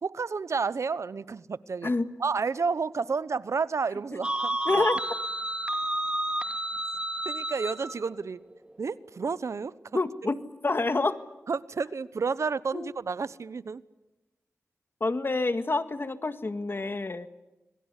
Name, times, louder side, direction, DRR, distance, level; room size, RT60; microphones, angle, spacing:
voice 1, 0.0-1.9 2.2-4.9 7.2-8.4 8.8-9.7 11.5-13.8, right 5 dB, 75° right, 17 dB, 0.9 m, -31 dB
sound 1, 4.2-7.9, right 1 dB, 20° right, 2.0 m, -30 dB
voice 2, 4.6-5.0 9.9-10.4 10.6-11.2 12.7-12.9 15.0-17.3, left 3 dB, 45° left, 11 dB, 1.8 m, -27 dB
26.0 x 22.5 x 8.3 m, 1.0 s
cardioid pair, 55°, 5 cm